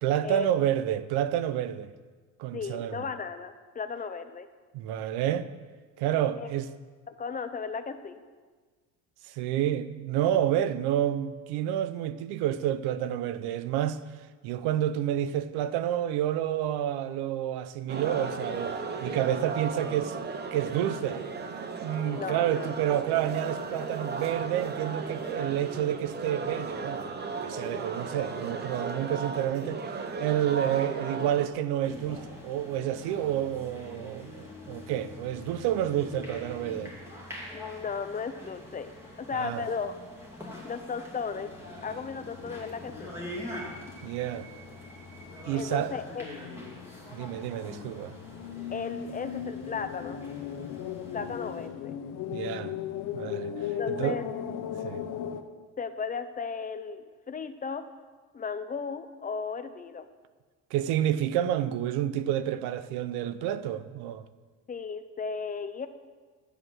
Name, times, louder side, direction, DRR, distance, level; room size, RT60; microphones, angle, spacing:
voice 1, 0.0-1.9 2.4-3.1 4.7-5.5 6.0-6.7 9.2-14.0 14.4-20.2 20.5-21.2 21.8-36.9 39.3-39.6 44.0-44.5 45.5-45.9 47.1-48.2 52.3-52.7 53.1-54.2 54.8-55.0 60.7-64.2, right 11 dB, 85° right, 0.7 m, -29 dB
voice 2, 2.5-4.5 6.4-6.5 7.1-8.2 22.0-22.7 37.5-38.9 39.2-39.9 40.6-41.5 41.8-43.1 45.5-46.2 48.7-50.2 51.1-51.9 53.8-54.2 55.8-57.8 58.3-60.1 64.7-65.9, left 5 dB, 20° left, 0.6 m, -35 dB
sound 1, 17.9-31.5, right 4 dB, 25° right, 0.9 m, -35 dB
sound 2, 31.8-51.7, left 1 dB, 5° right, 2.6 m, -44 dB
sound 3, 41.3-55.4, left 9 dB, 55° left, 0.9 m, -39 dB
12.0 x 8.1 x 6.2 m
cardioid pair, 140°, 38 cm